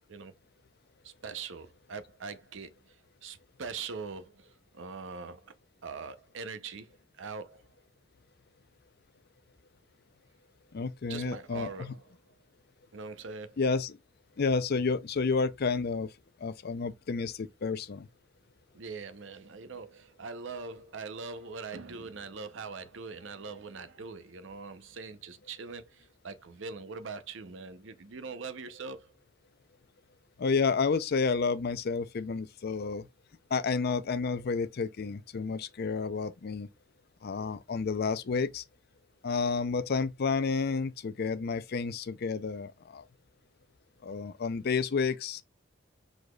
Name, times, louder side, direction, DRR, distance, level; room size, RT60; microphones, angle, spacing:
voice 1, 1.0-2.9 3.2-5.5 5.8-7.6 11.1-12.1 12.9-13.6 18.7-29.1, right 4 dB, 65° right, 0.7 m, -42 dB
voice 2, 10.7-11.7 13.6-14.0 14.4-16.1 16.4-18.1 30.4-33.1 33.5-36.7 37.2-38.6 39.2-43.0 44.0-45.4, left 4 dB, 50° left, 0.5 m, -30 dB
4.9 x 4.0 x 2.3 m
head